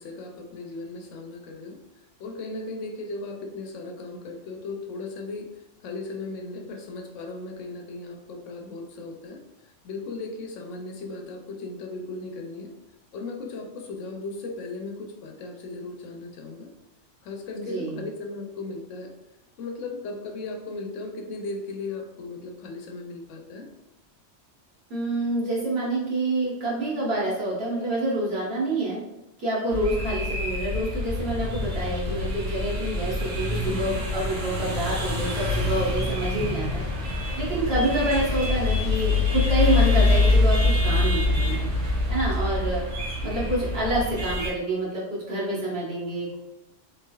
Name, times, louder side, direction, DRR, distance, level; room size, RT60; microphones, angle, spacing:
voice 1, 0.0-1.8 2.2-5.5 5.8-12.7 13.1-16.7 17.2-19.1 19.6-23.7 33.6-34.0, left 3 dB, 80° left, 2 dB, 0.9 m, -36 dB
voice 2, 17.5-18.0 24.9-29.0 29.4-36.8 37.4-41.7 42.1-42.8 43.2-46.4, right 1 dB, 55° right, -6 dB, 1.3 m, -27 dB
sound 1, 29.7-44.5, left 2 dB, 80° right, 1.3 m, -25 dB
3.4 x 3.2 x 2.3 m, 0.94 s
omnidirectional pair, 1.3 m